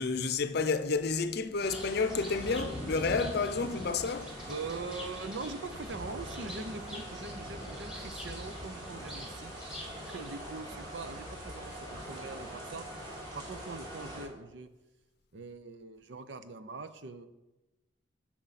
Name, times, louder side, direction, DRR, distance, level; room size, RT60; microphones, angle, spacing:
voice 1, 0.0-4.3, left 4 dB, 55° left, 0.6 m, -30 dB
Bird, 1.6-10.6, equal, 5° right, 1.9 m, -49 dB
sound 1, 1.6-14.2, equal, 25° right, 3.2 m, -42 dB
voice 2, 4.4-9.5 10.0-12.9 13.3-14.7 15.3-17.3, right 3 dB, 70° right, 0.7 m, -42 dB
12.5 x 6.1 x 4.1 m
head